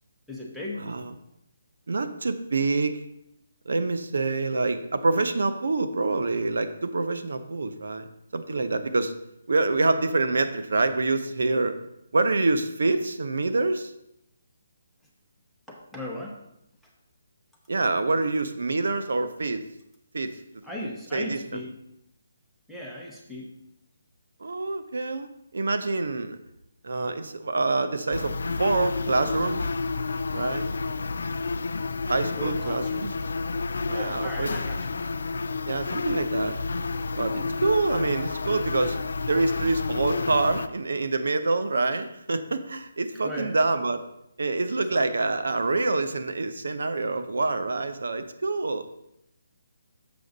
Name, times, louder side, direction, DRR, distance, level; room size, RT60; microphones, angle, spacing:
voice 1, 0.3-0.8 15.7-16.4 20.6-21.7 22.7-23.5 32.3-33.1 33.9-35.0 43.2-43.6 44.8-45.0, left 1 dB, ahead, -4 dB, 0.9 m, -37 dB
voice 2, 0.8-1.1 1.9-3.0 3.7-8.1 8.3-9.1 9.5-11.7 12.1-13.9 17.7-19.6 20.1-20.3 21.1-21.6 24.4-26.4 26.8-28.3 28.6-29.6 30.3-30.7 32.1-33.1 33.9-34.5 35.7-36.6 37.2-39.0 39.3-44.0 44.4-48.9, right 3 dB, 80° right, 10 dB, 0.6 m, -26 dB
sound 1, 28.1-40.7, left 4 dB, 75° left, 0.4 m, -30 dB
6.9 x 6.0 x 3.9 m, 0.79 s
hypercardioid pair, 170°, 0 cm